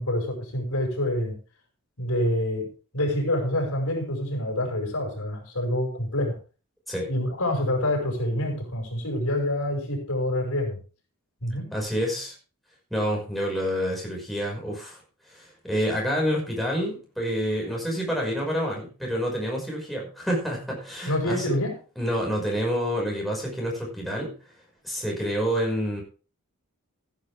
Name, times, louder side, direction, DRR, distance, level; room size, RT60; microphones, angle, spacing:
voice 1, 0.0-1.4 2.0-6.4 7.1-10.8 11.4-11.7 21.1-21.8, left 1 dB, 70° left, 2 dB, 5.6 m, -27 dB
voice 2, 11.7-12.3 12.9-15.0 15.3-21.5 22.0-24.3 24.8-26.0, equal, ahead, -2 dB, 5.7 m, -28 dB
15.0 x 10.5 x 3.5 m, 0.35 s
head